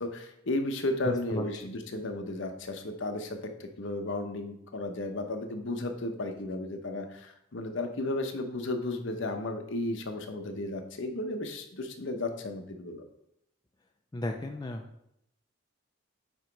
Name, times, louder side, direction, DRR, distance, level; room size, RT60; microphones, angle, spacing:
voice 1, 0.0-13.0, left 2 dB, 60° left, 5 dB, 0.8 m, -34 dB
voice 2, 1.0-1.5 14.1-14.8, left 1 dB, 20° left, 3 dB, 0.3 m, -33 dB
8.9 x 3.0 x 4.6 m, 0.77 s
head